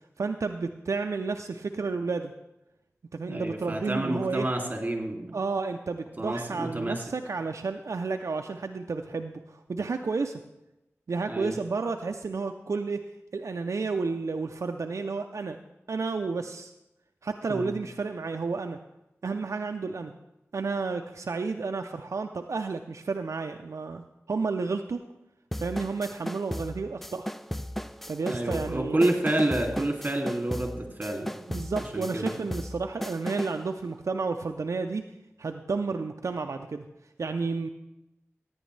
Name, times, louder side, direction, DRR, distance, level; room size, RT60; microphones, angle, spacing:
voice 1, 0.2-2.3 3.1-4.5 5.3-10.4 11.1-13.0 13.3-15.6 15.9-16.7 17.2-18.8 19.2-20.1 20.5-24.0 24.3-25.0 25.6-27.3 28.1-29.1 31.5-35.0 35.4-36.8 37.2-37.7, right 4 dB, 80° right, 5 dB, 0.5 m, -31 dB
voice 2, 3.3-5.4 6.2-7.0 11.3-11.5 17.5-17.7 28.3-31.3 31.9-32.3, right 1 dB, 35° right, 2 dB, 2.5 m, -29 dB
sound 1, 25.5-33.6, equal, 5° left, 0.4 m, -36 dB
15.5 x 9.5 x 3.2 m, 0.93 s
wide cardioid pair, 60°, 5 cm